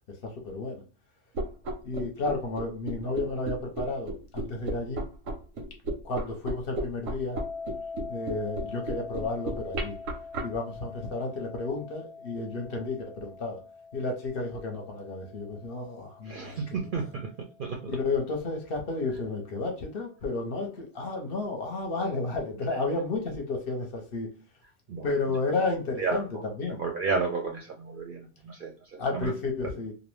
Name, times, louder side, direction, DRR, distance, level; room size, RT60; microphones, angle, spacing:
voice 1, 0.4-0.8 1.8-5.0 6.0-7.4 8.1-10.0 10.4-13.6 13.9-16.6 17.9-24.3 25.0-26.3 26.6-26.8 29.0-29.9, left 3 dB, 55° left, 2 dB, 0.8 m, -32 dB
sound 1, 1.3-10.4, right 1 dB, 90° right, 1.0 m, -33 dB
sound 2, 7.3-18.2, left 4 dB, 30° left, 0.4 m, -44 dB
voice 2, 16.2-17.3 17.6-17.8 24.9-25.1 26.0-26.2 26.8-29.3, right 4 dB, 60° right, 1 dB, 0.5 m, -32 dB
2.5 x 2.0 x 3.1 m, 0.38 s
omnidirectional pair, 1.3 m